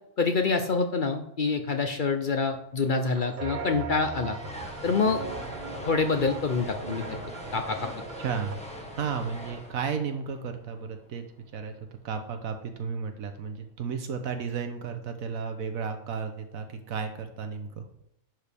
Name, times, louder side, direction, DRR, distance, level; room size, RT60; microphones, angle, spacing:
voice 1, 0.2-4.4 4.8-5.2 5.9-7.0 7.5-7.8, left 4 dB, 50° left, 6 dB, 0.6 m, -26 dB
sound 1, 3.0-8.6, right 4 dB, 40° right, 0.8 m, -39 dB
sound 2, 3.4-11.5, left 1 dB, 5° left, 1.2 m, -42 dB
voice 2, 8.2-8.6 9.0-11.2 11.5-11.7 12.0-17.8, right 6 dB, 80° right, 7 dB, 1.3 m, -33 dB
10.5 x 4.7 x 3.5 m, 0.83 s
omnidirectional pair, 1.4 m